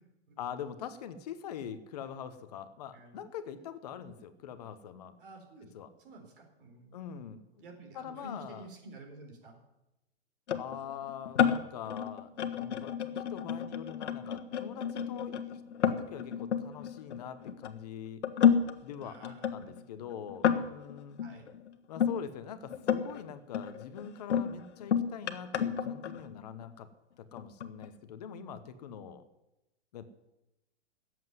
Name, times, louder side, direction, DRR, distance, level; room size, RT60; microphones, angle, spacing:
voice 1, 0.4-5.2 5.7-5.9 6.9-8.7 10.6-18.2 18.8-21.2 21.9-26.9 27.2-29.3 29.9-30.0, left 8 dB, 35° left, 11 dB, 1.0 m, -44 dB
voice 2, 5.2-5.7 6.0-7.3 7.6-9.6 19.0-19.8 21.2-21.5, right 2 dB, 45° right, 3 dB, 4.1 m, -51 dB
sound 1, 10.5-17.7 18.2-22.2 22.7-23.2 23.5-26.7 27.4-27.9, left 8 dB, 70° left, 1.5 m, -31 dB
14.0 x 7.8 x 9.4 m, 0.94 s
hypercardioid pair, 160°, 36 cm